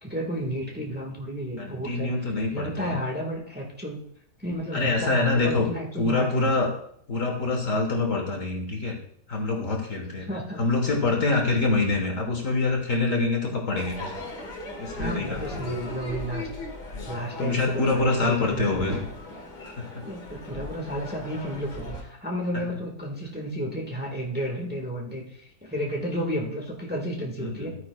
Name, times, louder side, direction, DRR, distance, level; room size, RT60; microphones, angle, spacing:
voice 1, 0.0-2.1 2.5-4.0 4.4-6.5 10.2-10.7 14.9-16.5 17.0-19.0 20.0-27.7, equal, 5° right, -1 dB, 1.4 m, -32 dB
voice 2, 1.6-3.0 4.7-5.7 6.0-6.7 7.1-9.0 9.3-10.3 10.6-14.2 14.8-15.7 16.9-19.0 19.8-20.0 27.4-27.8, left 3 dB, 50° left, 1 dB, 1.6 m, -26 dB
Crowd / Fireworks, 13.8-22.0, left 2 dB, 75° left, 2.4 m, -38 dB
13.5 x 9.1 x 2.3 m, 0.66 s
omnidirectional pair, 1.8 m